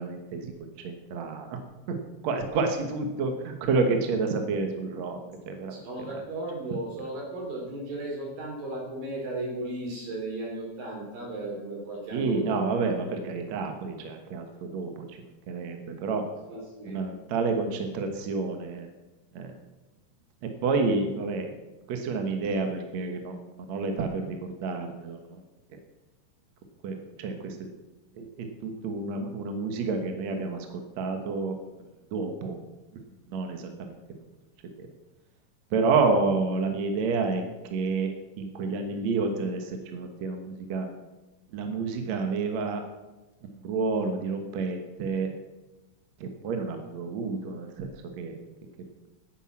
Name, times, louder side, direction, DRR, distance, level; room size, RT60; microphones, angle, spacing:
voice 1, 0.0-1.6 1.9-2.0 2.2-5.2 5.5-5.8 12.1-15.2 15.5-16.2 16.9-18.9 19.3-19.5 20.4-21.5 21.9-25.4 25.7-25.8 26.8-27.6 28.1-31.6 32.1-32.6 33.3-33.7 34.8-34.9 35.7-38.1 38.4-40.9 41.5-42.8 43.4-45.3 46.2-48.4, right 4 dB, 60° right, 5 dB, 2.3 m, -29 dB
voice 2, 5.7-12.6 16.5-17.0, right 2 dB, 80° right, -1 dB, 5.4 m, -35 dB
10.0 x 10.0 x 7.5 m, 1.1 s
omnidirectional pair, 4.0 m